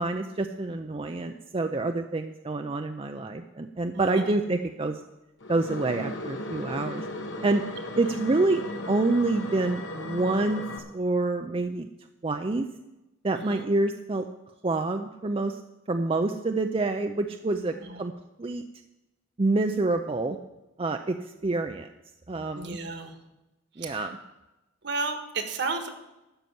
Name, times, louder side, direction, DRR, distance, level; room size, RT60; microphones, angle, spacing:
voice 1, 0.0-5.0 5.5-7.1 7.4-7.6 8.0-10.6 10.9-11.9 12.2-12.7 13.2-14.3 14.6-15.6 15.9-18.1 18.4-18.6 19.4-20.4 20.8-21.2 21.4-21.9 22.3-22.8 23.8-24.2, right 2 dB, 30° right, 6 dB, 0.5 m, -27 dB
voice 2, 3.9-4.4 8.0-8.2 13.3-13.7 17.7-18.0 22.6-23.2 23.8-24.1 24.8-25.9, right 4 dB, 60° right, 6 dB, 1.6 m, -33 dB
sound 1, 5.4-10.8, left 2 dB, 65° left, 1.5 m, -36 dB
12.5 x 5.7 x 9.3 m, 0.98 s
head